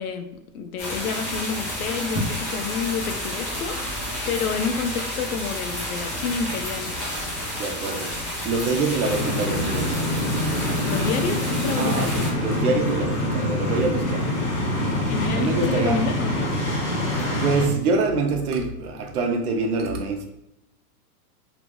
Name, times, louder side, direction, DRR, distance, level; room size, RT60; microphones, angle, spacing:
voice 1, 0.0-7.0 10.6-12.2 15.0-16.5, left 5 dB, 65° left, 7 dB, 0.6 m, -29 dB
sound 1, 0.8-12.3, equal, 20° left, 0.3 m, -30 dB
voice 2, 7.5-8.1 8.4-10.0 11.8-14.2 15.3-16.0 17.4-20.2, right 3 dB, 75° right, 4 dB, 0.8 m, -25 dB
sound 2, 9.0-17.7, left 1 dB, 90° left, 1.4 m, -25 dB
3.1 x 3.1 x 2.5 m, 0.84 s
supercardioid pair, 160°, 46 cm